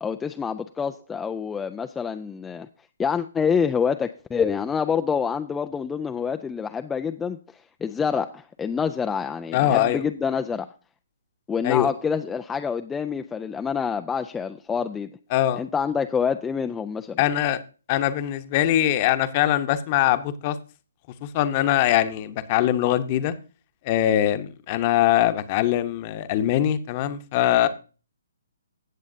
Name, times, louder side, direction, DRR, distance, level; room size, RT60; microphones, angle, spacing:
voice 1, 0.0-2.7 3.0-10.7 11.5-15.1 15.6-17.2, left 6 dB, 10° left, 0.4 m, -27 dB
voice 2, 9.5-10.0 11.6-11.9 15.3-15.6 17.2-17.6 17.9-20.6 21.2-23.3 23.8-27.7, left 12 dB, 35° left, 1.0 m, -22 dB
16.0 x 7.4 x 2.7 m
hypercardioid pair, 140°, 0 cm